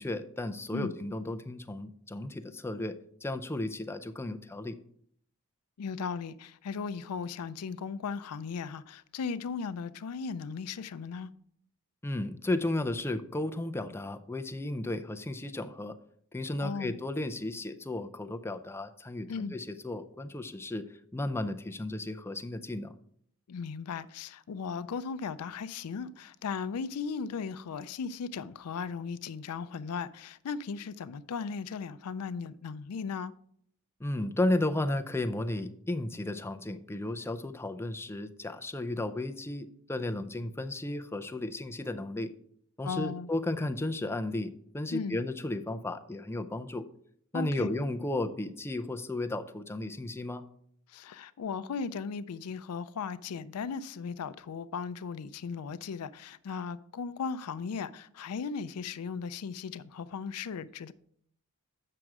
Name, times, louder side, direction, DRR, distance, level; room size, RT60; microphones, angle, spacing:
voice 1, 0.0-4.8 12.0-16.0 16.3-20.8 21.1-22.9 34.0-42.3 42.8-46.9 47.3-50.4, left 1 dB, 10° left, 0.4 m, -34 dB
voice 2, 5.8-11.3 16.6-17.0 19.3-19.5 23.5-33.3 42.8-43.3 44.9-45.2 47.3-47.7 50.9-60.9, left 5 dB, 80° left, 0.4 m, -37 dB
7.7 x 6.1 x 4.7 m
head